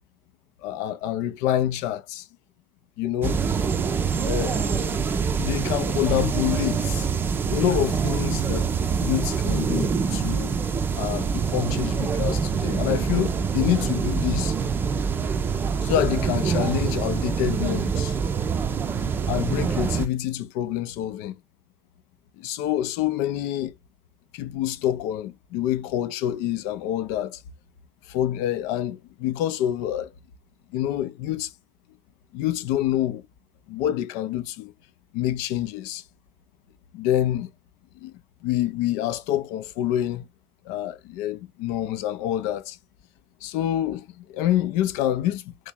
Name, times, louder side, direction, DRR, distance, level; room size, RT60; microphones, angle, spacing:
voice 1, 0.6-2.3 3.0-3.4 4.2-5.0 5.4-7.1 7.5-8.7 9.0-10.6 11.0-14.5 15.8-18.2 19.3-21.4 22.4-23.7 24.3-27.4 28.1-30.1 30.7-31.5 32.3-33.3 33.7-34.7 35.1-36.0 36.9-37.5 38.0-38.1 38.4-40.3 40.7-42.8 43.4-45.7, left 12 dB, 65° left, 0.4 m, -27 dB
sound 1, 3.2-20.1, right 6 dB, 35° right, 0.5 m, -25 dB
3.1 x 2.8 x 3.6 m
figure-of-eight pair, 50°, 6 cm